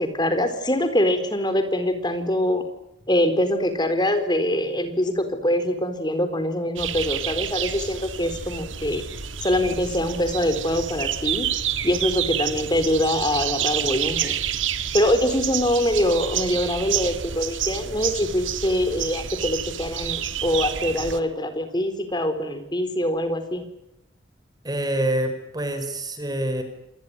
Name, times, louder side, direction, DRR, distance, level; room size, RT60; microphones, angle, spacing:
voice 1, 0.0-2.6 3.1-9.0 9.4-11.5 11.8-14.3 14.9-23.6, left 1 dB, 20° left, 9 dB, 4.0 m, -24 dB
sound 1, 6.8-21.2, right 9 dB, 85° right, 2.0 m, -29 dB
voice 2, 24.6-26.6, right 1 dB, 20° right, 8 dB, 4.6 m, -26 dB
27.5 x 20.5 x 9.7 m, 0.85 s
head